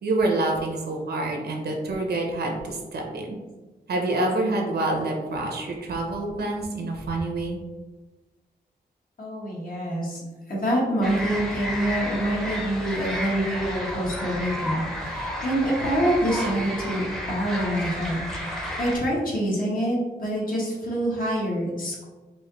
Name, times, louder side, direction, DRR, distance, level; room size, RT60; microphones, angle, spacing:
voice 1, 0.0-3.4 3.9-7.6, right 2 dB, 80° right, 1 dB, 0.9 m, -27 dB
voice 2, 9.2-22.0, right 1 dB, 60° left, -5 dB, 1.4 m, -26 dB
sound 1, 11.0-19.0, equal, ahead, 0.7 m, -32 dB
4.5 x 2.7 x 3.0 m, 1.2 s
wide cardioid pair, 120°, 17 cm